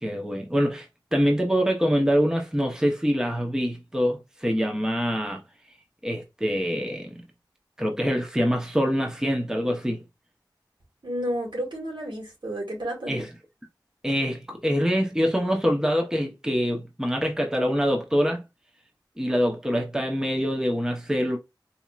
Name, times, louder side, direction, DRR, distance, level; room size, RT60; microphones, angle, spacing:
voice 1, 0.0-5.4 6.0-7.2 7.8-10.0 13.1-13.3 14.0-18.4 19.2-21.4, equal, 10° right, 0.9 m, -25 dB
voice 2, 11.0-13.1, equal, 80° right, 2.1 m, -31 dB
4.2 x 2.8 x 2.4 m
wide cardioid pair, 50°, 8 cm